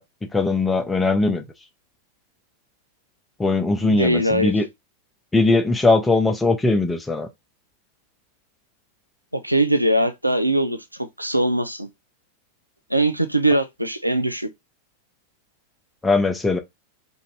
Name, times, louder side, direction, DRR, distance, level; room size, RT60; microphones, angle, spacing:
voice 1, 0.0-1.4 3.4-4.6 5.3-7.3 16.0-16.6, left 3 dB, 10° left, 0.6 m, -20 dB
voice 2, 3.9-4.5 9.3-10.8 11.2-11.9 12.9-14.5, right 1 dB, 85° right, 0.4 m, -21 dB
2.6 x 2.5 x 3.2 m
figure-of-eight pair, 90°, 0 cm